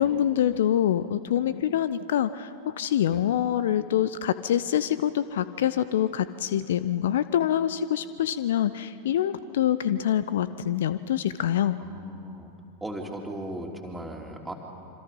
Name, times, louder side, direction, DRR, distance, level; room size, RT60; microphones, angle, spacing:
voice 1, 0.0-11.8, left 10 dB, 60° left, 14 dB, 0.6 m, -25 dB
voice 2, 11.8-12.5 12.8-14.5, right 1 dB, 5° right, 1 dB, 3.1 m, -37 dB
26.5 x 25.5 x 5.4 m, 2.7 s
figure-of-eight pair, 90°, 0 cm